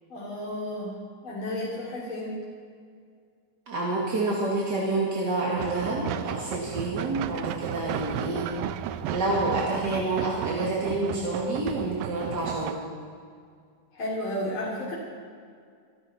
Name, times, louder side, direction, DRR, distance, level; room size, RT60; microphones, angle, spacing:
voice 1, 0.1-0.9 1.2-2.4 13.9-14.9, left 1 dB, 35° left, -7 dB, 3.5 m, -32 dB
voice 2, 3.7-8.5 9.1-12.8, right 2 dB, 35° right, -5 dB, 2.0 m, -28 dB
sound 1, 5.6-12.7, right 10 dB, 80° right, 2.2 m, -34 dB
26.0 x 12.5 x 4.3 m, 2.2 s
omnidirectional pair, 4.4 m